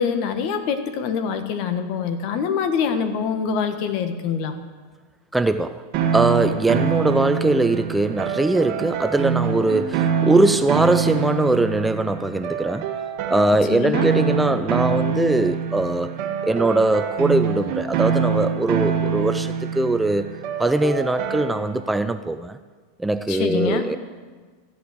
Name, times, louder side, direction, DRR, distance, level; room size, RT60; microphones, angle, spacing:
voice 1, 0.0-4.5 13.7-14.1 23.3-23.8, left 6 dB, 55° left, 8 dB, 1.6 m, -24 dB
voice 2, 5.3-5.8 6.1-12.9 13.3-16.2 16.4-20.3 20.6-22.6 23.0-24.0, right 2 dB, 5° right, 11 dB, 0.4 m, -21 dB
sound 1, 5.9-21.9, right 7 dB, 55° right, 1.9 m, -25 dB
14.5 x 8.5 x 8.0 m, 1.5 s
supercardioid pair, 125°, 0 cm